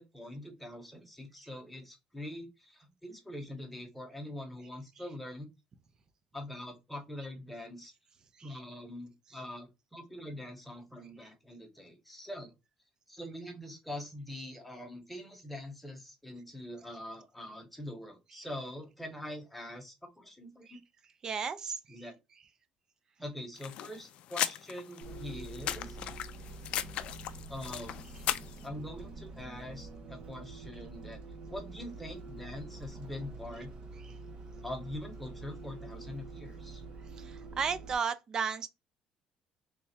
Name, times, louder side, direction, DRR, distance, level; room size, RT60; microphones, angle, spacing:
voice 1, 0.0-5.5 6.3-7.9 8.4-12.5 13.1-20.8 21.9-22.2 23.2-26.2 27.5-28.0 28.6-31.2 31.5-33.7 34.6-36.8, left 1 dB, 5° left, 0.9 m, -44 dB
voice 2, 21.2-21.8 37.6-38.7, right 6 dB, 35° right, 0.4 m, -32 dB
sound 1, 23.6-28.6, left 11 dB, 65° left, 0.3 m, -37 dB
Bus, 25.0-37.9, right 3 dB, 55° right, 0.7 m, -46 dB
3.3 x 2.2 x 4.1 m
cardioid pair, 150°, 2 cm